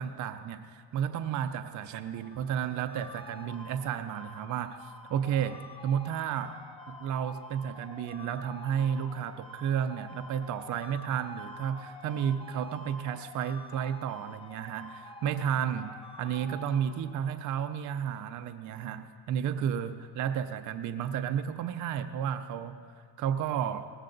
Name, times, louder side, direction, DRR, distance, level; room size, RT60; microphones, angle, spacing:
voice 1, 0.0-6.6 6.9-22.8 23.2-23.9, right 8 dB, 45° right, 9 dB, 0.5 m, -32 dB
sound 1, 2.1-17.4, left 1 dB, 15° left, 0.6 m, -48 dB
18.0 x 14.5 x 3.9 m, 2.1 s
cardioid pair, 165°, 42 cm